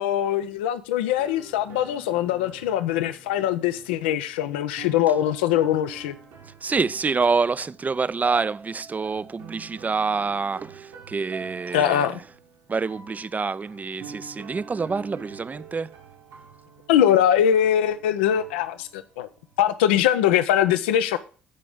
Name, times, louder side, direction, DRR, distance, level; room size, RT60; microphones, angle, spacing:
voice 1, 0.0-6.2 11.7-12.2 16.9-19.3 19.6-21.2, left 10 dB, 80° left, 0.5 m, -22 dB
sound 1, 1.2-19.7, right 5 dB, 75° right, 1.8 m, -45 dB
voice 2, 6.6-12.2 12.7-15.9, right 4 dB, 30° right, 0.4 m, -27 dB
14.0 x 5.0 x 3.6 m
figure-of-eight pair, 45°, 6 cm